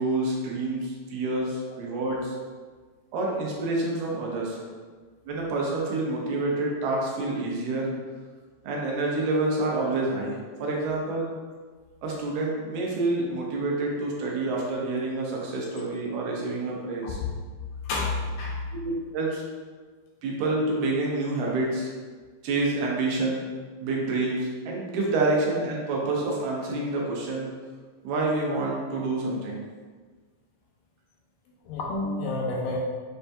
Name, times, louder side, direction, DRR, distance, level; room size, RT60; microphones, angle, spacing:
voice 1, 0.0-2.3 3.1-4.6 5.3-7.9 8.6-11.3 12.0-17.2 18.8-19.4 20.2-21.9 22.4-23.5 23.8-27.5 28.0-29.6, right 2 dB, 85° right, -2 dB, 2.4 m, -28 dB
voice 2, 17.9-18.5 31.7-32.8, left 2 dB, 80° left, -2 dB, 1.9 m, -29 dB
6.2 x 2.6 x 2.2 m, 1.5 s
omnidirectional pair, 3.8 m